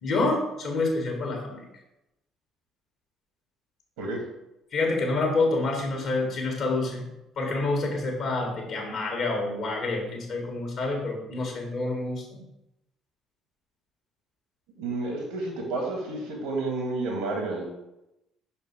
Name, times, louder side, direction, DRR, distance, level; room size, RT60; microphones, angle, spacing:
voice 1, 0.0-1.6 4.7-7.0 7.4-12.4, left 2 dB, 55° left, 1 dB, 1.5 m, -27 dB
voice 2, 14.8-17.7, right 2 dB, 65° right, 1 dB, 1.7 m, -30 dB
5.5 x 4.4 x 4.5 m, 0.89 s
figure-of-eight pair, 50°, 0 cm